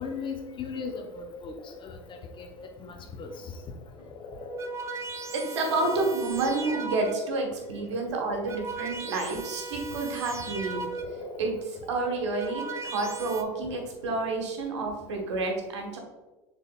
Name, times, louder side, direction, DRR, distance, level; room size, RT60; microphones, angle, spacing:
voice 1, 0.0-1.6 1.8-2.5 2.8-3.3, left 5 dB, 35° left, 3 dB, 0.8 m, -37 dB
sound 1, 1.6-2.6 2.9-9.5 10.7-12.9, left 4 dB, 50° left, 1.0 m, -47 dB
sound 2, 3.3-3.5 4.3-7.4 8.2-11.3 12.1-13.4, right 3 dB, 20° right, 0.4 m, -37 dB
voice 2, 5.3-10.9 11.4-16.0, right 3 dB, 75° right, 2 dB, 1.1 m, -29 dB
6.5 x 3.6 x 2.3 m, 1.2 s
hypercardioid pair, 80°, 15 cm